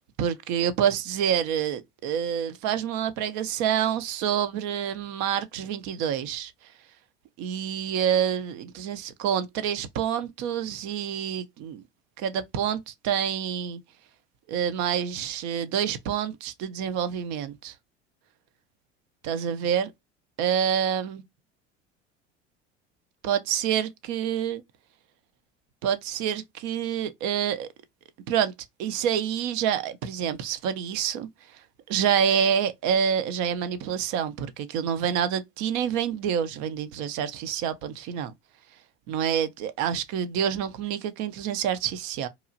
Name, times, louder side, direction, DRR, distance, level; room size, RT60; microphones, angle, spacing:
voice 1, 0.2-6.5 7.4-11.8 12.2-13.8 14.5-17.7 19.2-19.9 20.4-21.2 23.2-24.6 25.8-27.7 28.3-28.5 28.8-31.3 31.9-38.3 39.1-42.3, right 8 dB, 55° right, 0.5 m, -27 dB
2.9 x 2.3 x 2.4 m
hypercardioid pair, 85°, 35 cm